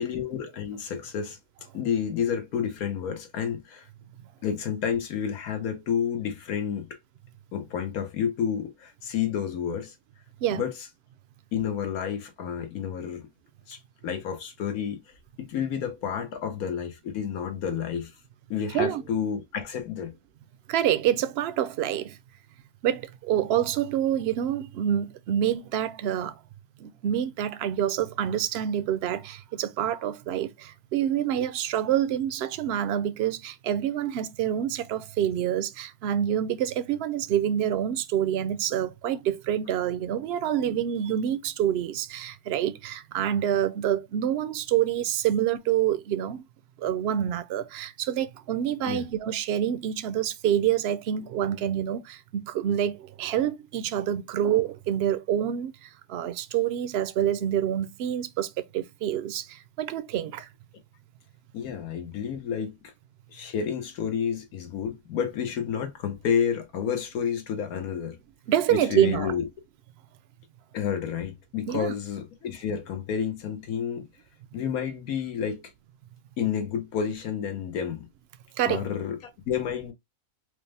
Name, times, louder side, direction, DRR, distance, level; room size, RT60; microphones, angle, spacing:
voice 1, 0.0-1.4 1.7-3.9 4.4-7.0 7.5-9.9 10.5-10.7 11.5-13.3 13.7-15.0 15.4-18.1 18.5-20.1 48.9-49.0 61.5-62.9 63.3-68.2 68.7-69.5 70.7-74.1 74.5-75.6 76.4-78.1 78.6-79.2 79.5-79.9, left 8 dB, 90° left, 1.5 m, -30 dB
voice 2, 20.7-22.2 22.8-26.4 26.8-46.4 46.8-60.5 68.5-69.3 71.7-71.9 78.6-78.9, right 10 dB, 65° right, 0.6 m, -27 dB
5.0 x 2.1 x 3.3 m
omnidirectional pair, 1.5 m